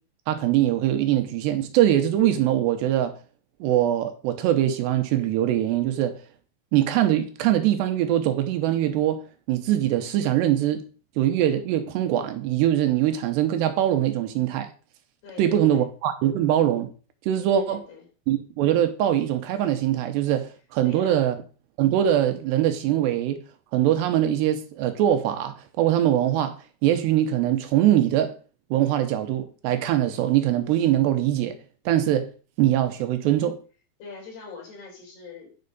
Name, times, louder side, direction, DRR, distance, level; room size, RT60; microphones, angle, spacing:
voice 1, 0.3-3.1 3.6-6.2 6.7-9.2 9.5-10.8 11.2-14.7 15.4-16.9 17.3-17.8 18.3-21.4 21.8-23.4 23.7-26.5 26.8-28.3 28.7-31.6 31.9-32.3 32.6-33.6, right 12 dB, 80° right, 2.9 m, -22 dB
voice 2, 15.2-15.8 17.5-18.0 20.8-21.4 34.0-35.6, left 5 dB, 65° left, 5.9 m, -43 dB
9.6 x 5.5 x 5.3 m
omnidirectional pair, 5.1 m